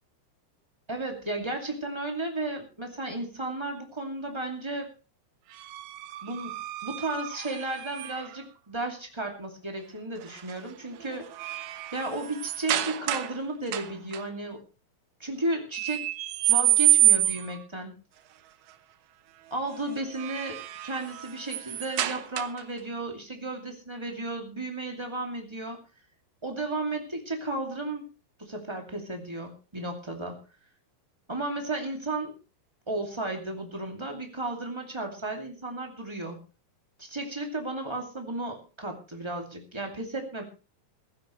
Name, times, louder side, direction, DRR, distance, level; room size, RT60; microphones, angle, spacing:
voice 1, 0.9-4.9 6.2-11.3 11.9-14.6 15.2-16.1 16.5-18.0 19.5-25.8 26.4-28.1 28.4-30.4 31.3-32.3 32.9-36.4 37.0-40.4, right 2 dB, 15° right, 2 dB, 0.9 m, -34 dB
sound 1, 5.5-8.4 10.2-10.5 11.0-13.4 13.7-14.2 15.7-17.6 19.9-22.8, right 15 dB, 80° right, 1.9 m, -28 dB
16.0 x 15.5 x 3.2 m, 0.32 s
omnidirectional pair, 5.1 m